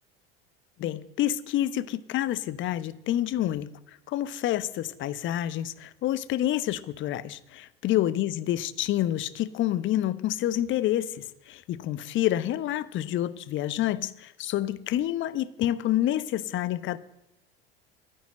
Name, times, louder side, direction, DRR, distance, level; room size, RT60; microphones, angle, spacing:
voice 1, 0.8-3.7 4.1-17.0, left 13 dB, 40° left, 17 dB, 0.9 m, -28 dB
14.5 x 10.5 x 7.6 m, 0.92 s
figure-of-eight pair, 75°, 30 cm